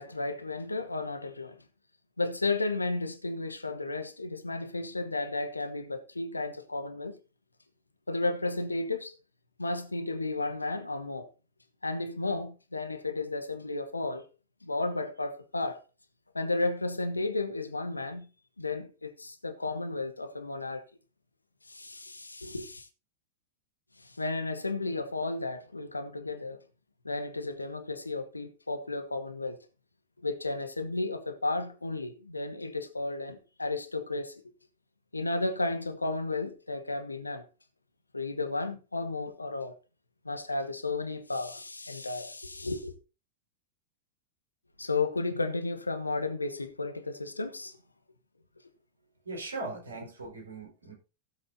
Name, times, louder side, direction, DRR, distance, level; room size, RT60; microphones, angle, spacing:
voice 1, 0.0-1.6 2.2-7.2 8.1-9.1 9.6-11.3 11.8-14.2 14.6-15.8 16.3-18.3 18.6-20.8 21.7-22.9 24.0-26.6 27.0-29.6 30.2-34.4 35.1-37.4 38.1-39.7 40.2-42.9 44.8-47.8, left 2 dB, 80° left, 1.2 m, -33 dB
voice 2, 49.2-50.9, right 3 dB, 75° right, 4.7 m, -39 dB
16.5 x 7.9 x 2.8 m
figure-of-eight pair, 90°, 0 cm